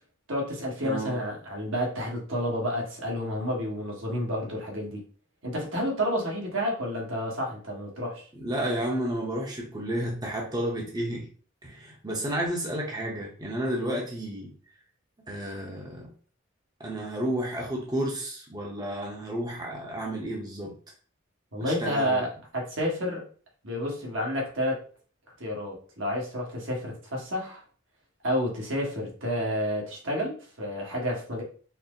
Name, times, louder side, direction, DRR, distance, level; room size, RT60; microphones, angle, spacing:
voice 1, 0.3-5.0 5.4-8.3 21.5-23.2 23.6-24.8 25.4-27.6 28.2-31.4, equal, 75° right, -2 dB, 1.4 m, -30 dB
voice 2, 0.8-1.2 8.3-11.3 11.6-14.5 15.3-16.1 16.8-20.7 21.6-22.2, right 1 dB, 20° right, -2 dB, 0.8 m, -31 dB
4.3 x 2.0 x 3.7 m, 0.42 s
head